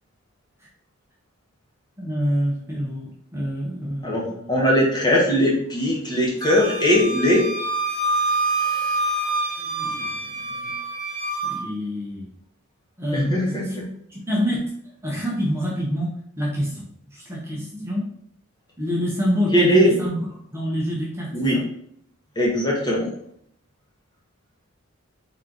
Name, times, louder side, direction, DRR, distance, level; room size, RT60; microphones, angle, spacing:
voice 1, 2.0-4.5 9.6-10.7 11.4-12.3 13.0-13.5 14.1-14.6 15.0-16.1 16.4-16.8 17.1-18.0 18.8-20.2 20.5-21.6, equal, 10° right, -5 dB, 0.8 m, -27 dB
voice 2, 4.0-7.5 13.1-13.8 19.5-19.9 21.3-21.6 22.3-23.1, equal, 20° left, -4 dB, 1.2 m, -20 dB
Wind instrument woodwind instrument, 6.4-11.6, right 2 dB, 45° right, 1.0 m, -26 dB
3.8 x 3.1 x 3.7 m, 0.67 s
head